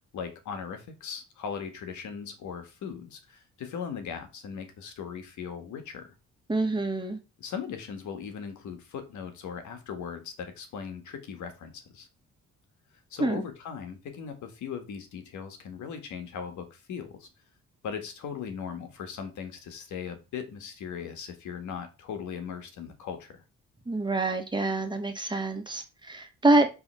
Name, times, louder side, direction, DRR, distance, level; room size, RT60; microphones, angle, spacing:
voice 1, 0.1-6.1 7.4-12.1 13.1-17.3 17.8-23.4, left 7 dB, 75° left, 6 dB, 1.6 m, -38 dB
voice 2, 6.5-7.2 13.2-13.4 23.9-26.7, right 2 dB, 15° right, 5 dB, 1.6 m, -26 dB
5.6 x 3.5 x 5.6 m, 0.29 s
cardioid pair, 90°, 30 cm